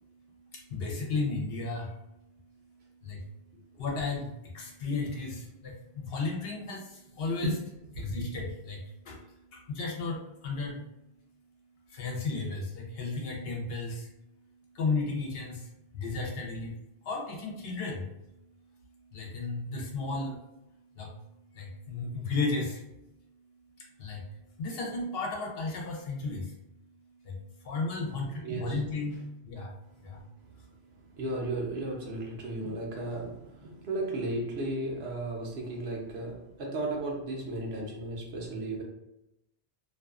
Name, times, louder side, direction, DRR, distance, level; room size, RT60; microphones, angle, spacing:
voice 1, 0.5-1.9 3.0-3.2 3.8-7.5 8.0-9.2 9.5-10.8 11.9-14.1 14.7-16.7 17.0-18.1 19.1-20.4 21.0-21.1 21.5-22.8 24.0-24.2 24.6-26.5 27.2-27.4 27.6-29.7 30.0-30.2, left 3 dB, 65° left, -1 dB, 0.8 m, -34 dB
voice 2, 28.4-28.8 31.2-38.8, right 2 dB, 70° right, -1 dB, 0.9 m, -34 dB
2.5 x 2.3 x 2.3 m, 0.88 s
omnidirectional pair, 1.1 m